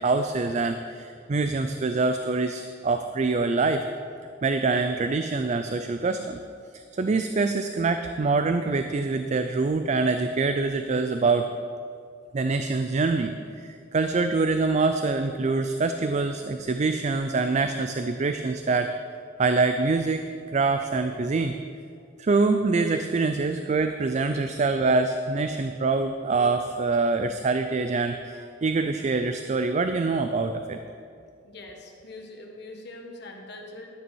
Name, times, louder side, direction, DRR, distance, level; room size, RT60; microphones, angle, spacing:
voice 1, 0.0-3.8 4.4-6.4 6.7-11.5 12.3-13.3 13.6-18.9 19.4-20.2 20.5-21.6 22.2-30.8, right 3 dB, 40° right, 8 dB, 0.4 m, -25 dB
voice 2, 31.4-33.9, left 2 dB, 65° left, 1 dB, 1.5 m, -42 dB
12.5 x 9.3 x 4.6 m, 2.3 s
head